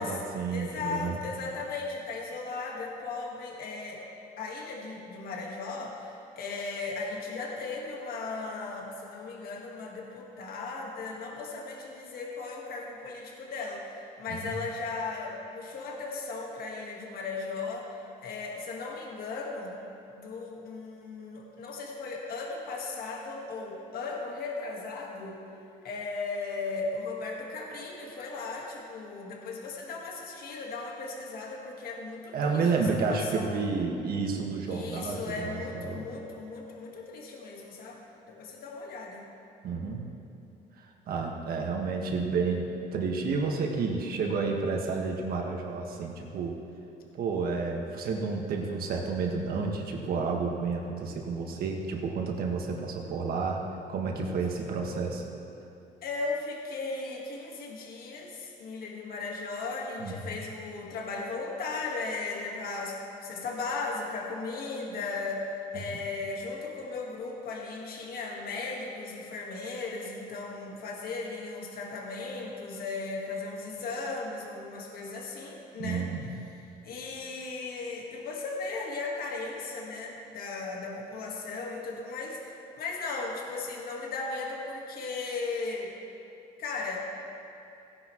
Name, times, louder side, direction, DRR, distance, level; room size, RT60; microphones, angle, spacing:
voice 1, 0.0-1.2 14.4-14.5 32.3-36.0 39.6-40.0 41.1-46.5 47.1-53.6 53.9-55.2 60.0-60.2 65.7-65.8 75.8-76.2, right 4 dB, 60° right, 0 dB, 1.7 m, -30 dB
voice 2, 0.5-4.0 4.4-17.9 18.2-19.8 20.2-25.4 25.8-33.7 34.7-39.3 56.0-63.0 63.2-65.4 65.7-76.1 76.8-85.9 86.6-87.0, left 3 dB, 65° left, 0 dB, 1.7 m, -36 dB
16.5 x 10.0 x 3.1 m, 2.8 s
cardioid pair, 110°, 17 cm